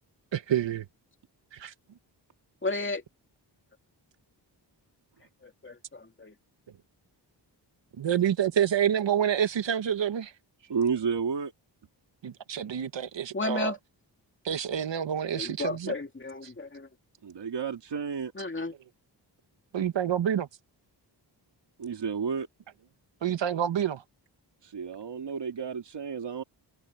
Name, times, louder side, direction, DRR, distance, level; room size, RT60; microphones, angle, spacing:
voice 1, 0.3-0.8 1.6-1.7 8.0-10.3 12.2-13.7 14.4-15.9 19.7-20.5 23.2-24.0, right 9 dB, 85° right, 1.5 m, -27 dB
voice 2, 2.6-3.0 5.6-6.3 13.3-13.8 15.3-16.9 18.4-18.7, left 2 dB, 25° left, 2.7 m, -33 dB
voice 3, 10.7-11.5 17.2-18.3 21.8-22.5 24.6-26.4, right 6 dB, 70° right, 2.7 m, -31 dB
wide cardioid pair, 115°, 43 cm